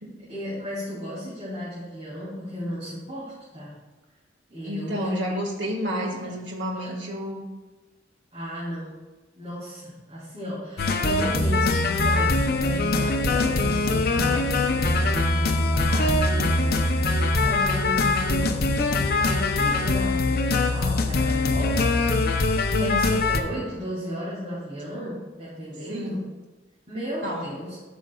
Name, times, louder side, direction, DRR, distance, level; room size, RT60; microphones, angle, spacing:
voice 1, 0.3-3.7 4.5-5.2 5.9-6.3 6.8-7.0 8.3-9.0 9.3-18.7 19.1-26.3 26.9-27.8, equal, 35° right, -10 dB, 2.9 m, -35 dB
voice 2, 4.6-7.5 22.7-23.2 25.9-26.2 27.2-27.5, equal, 75° right, 0 dB, 1.8 m, -30 dB
sound 1, 10.8-23.4, left 2 dB, 55° left, 0.7 m, -22 dB
14.0 x 6.1 x 2.4 m, 1.2 s
head